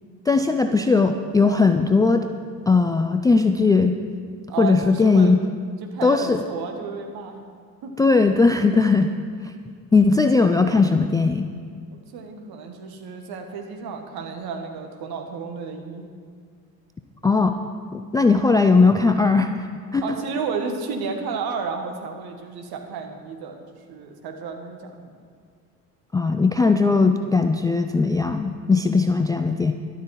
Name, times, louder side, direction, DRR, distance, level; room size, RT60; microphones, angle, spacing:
voice 1, 0.3-2.3 2.7-4.0 4.6-5.4 6.0-6.4 8.0-9.1 9.4-9.5 9.9-11.5 17.2-17.6 17.9-19.5 19.9-20.0 26.1-29.7, left 4 dB, 10° left, 7 dB, 0.4 m, -18 dB
voice 2, 4.5-5.4 5.8-7.4 7.8-8.0 11.9-16.1 20.0-25.1, right 5 dB, 50° right, 4 dB, 1.7 m, -32 dB
12.5 x 12.0 x 4.6 m, 2.1 s
figure-of-eight pair, 55°, 48 cm